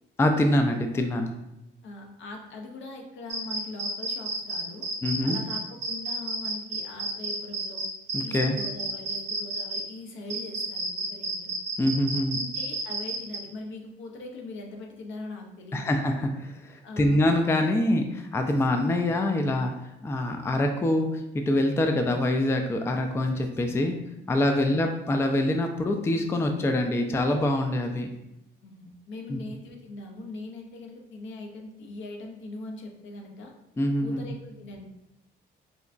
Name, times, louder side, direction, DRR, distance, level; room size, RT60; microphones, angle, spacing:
voice 1, 0.2-1.3 5.0-5.4 8.1-8.6 11.8-12.4 15.7-19.7 20.0-24.0 24.3-28.1 29.3-29.4 33.8-34.2, left 1 dB, 15° left, 5 dB, 0.3 m, -25 dB
voice 2, 1.8-4.9 5.2-7.9 8.2-11.5 12.3-16.0 16.8-17.2 23.6-23.8 28.6-33.5 34.0-34.9, left 2 dB, 70° left, 2 dB, 0.6 m, -41 dB
sound 1, 3.3-9.8 10.3-13.4, right 2 dB, 60° right, 0.7 m, -31 dB
3.8 x 2.2 x 2.4 m, 0.89 s
cardioid pair, 90°, 20 cm